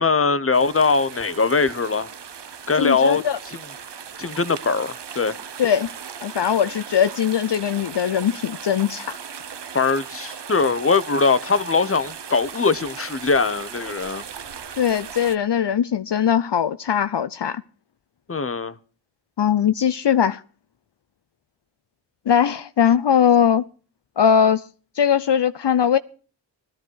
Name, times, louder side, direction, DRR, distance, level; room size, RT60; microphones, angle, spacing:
voice 1, 0.0-2.1 2.7-3.2 4.2-5.3 9.7-14.2 18.3-18.7, left 4 dB, 30° left, 1.0 m, -21 dB
sound 1, 0.5-15.4, right 7 dB, 60° right, 1.0 m, -38 dB
voice 2, 2.8-3.4 5.6-5.9 6.2-9.2 14.8-17.6 19.4-20.4 22.3-23.6 24.2-24.7 25.0-26.0, left 8 dB, 65° left, 0.7 m, -20 dB
18.0 x 13.0 x 4.6 m
wide cardioid pair, 60°, 46 cm